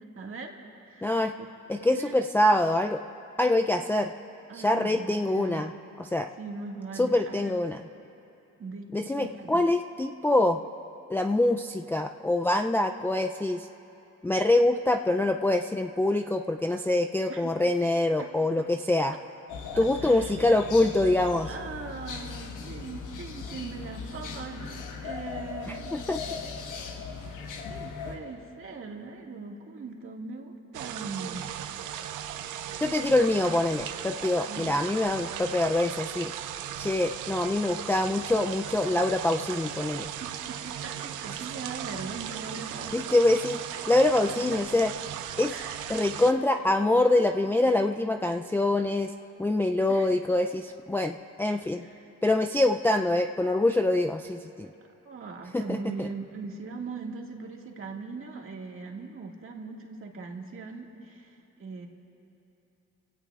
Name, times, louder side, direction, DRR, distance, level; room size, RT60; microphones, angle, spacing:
voice 1, 0.1-0.6 0.9-1.5 1.9-2.1 4.5-5.7 6.4-7.5 8.6-9.6 17.3-17.5 18.2-18.3 19.7-20.3 21.4-26.0 26.6-31.5 34.4-34.9 40.2-43.2 43.7-43.8 44.5-44.6 45.5-45.9 49.9-50.1 51.8-52.1 55.0-61.9, right 4 dB, 45° right, 0 dB, 1.9 m, -40 dB
voice 2, 1.0-1.3 1.7-3.0 3.4-4.1 4.5-5.7 6.0-6.3 6.9-7.8 8.9-10.6 11.1-13.7 14.2-19.1 19.8-21.5 25.7-26.2 32.8-36.3 36.8-40.1 42.9-43.6 43.9-44.9 45.4-45.5 45.9-49.1 49.4-51.9 52.2-54.7 55.5-56.1, left 2 dB, 5° left, 4 dB, 0.4 m, -25 dB
sound 1, 19.5-28.2, left 5 dB, 90° left, 1.4 m, -38 dB
sound 2, 30.7-46.3, right 10 dB, 85° right, 0.7 m, -37 dB
29.5 x 17.0 x 2.4 m, 2.9 s
cardioid pair, 90°, 30 cm